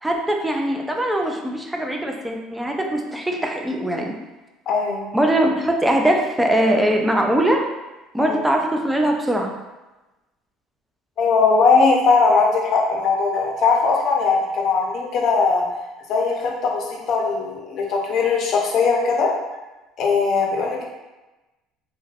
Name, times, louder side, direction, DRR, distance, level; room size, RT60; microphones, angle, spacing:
voice 1, 0.0-4.2 5.1-7.6 8.1-9.6, right 1 dB, 10° right, 2 dB, 0.4 m, -21 dB
voice 2, 4.7-5.1 8.2-8.4 11.2-15.6 16.1-19.3 20.0-20.8, left 4 dB, 50° left, 0 dB, 0.6 m, -19 dB
3.1 x 2.1 x 2.3 m, 1.1 s
supercardioid pair, 110°, 0 cm